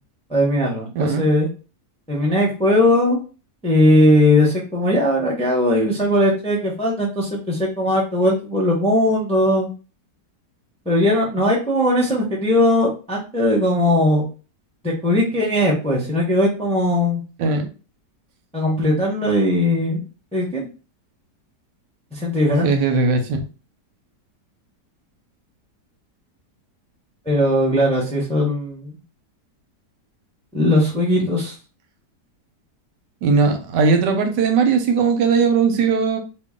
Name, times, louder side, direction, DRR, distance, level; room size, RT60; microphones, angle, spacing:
voice 1, 0.3-1.5 2.1-3.2 3.6-9.7 10.9-14.2 14.8-17.2 18.5-20.0 20.3-20.7 22.1-22.7 27.3-28.9 30.5-31.5, left 1 dB, 5° left, -3 dB, 0.5 m, -19 dB
voice 2, 22.6-23.4 31.2-31.3 33.2-36.2, right 5 dB, 90° right, 6 dB, 1.3 m, -18 dB
3.1 x 2.5 x 3.6 m, 0.34 s
omnidirectional pair, 1.8 m